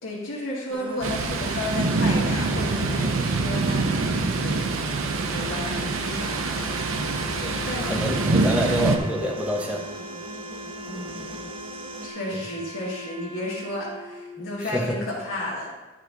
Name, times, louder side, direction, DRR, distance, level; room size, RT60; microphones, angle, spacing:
voice 1, 0.0-4.7 5.3-6.5 7.6-7.9 10.9-11.4 12.0-15.7, left 1 dB, 75° left, -7 dB, 1.9 m, -33 dB
sound 1, 0.7-12.1, right 2 dB, 25° right, 0.6 m, -38 dB
Thunder, 1.0-9.0, right 3 dB, 80° right, 0.8 m, -25 dB
Wind instrument woodwind instrument, 5.3-14.6, left 1 dB, 50° right, 2.0 m, -40 dB
voice 2, 7.4-9.8 14.7-15.0, equal, 5° right, -1 dB, 1.2 m, -27 dB
11.5 x 4.5 x 4.1 m, 1.1 s
head